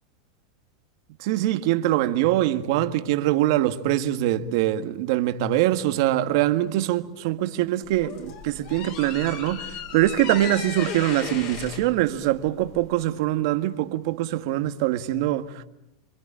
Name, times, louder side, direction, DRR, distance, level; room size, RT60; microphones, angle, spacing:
voice 1, 1.2-15.6, right 14 dB, 60° right, 1.8 m, -23 dB
sound 1, 7.8-13.0, left 7 dB, 55° left, 6.9 m, -36 dB
27.0 x 25.0 x 8.8 m
supercardioid pair, 140°, 3 cm